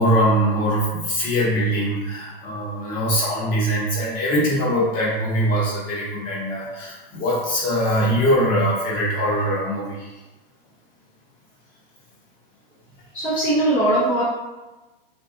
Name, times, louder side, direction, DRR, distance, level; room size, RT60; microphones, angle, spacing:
voice 1, 0.0-10.1, equal, 30° left, -5 dB, 0.9 m, -22 dB
voice 2, 13.1-14.2, right 1 dB, 5° left, -11 dB, 0.5 m, -20 dB
2.6 x 2.3 x 2.7 m, 1.1 s
hypercardioid pair, 130°, 29 cm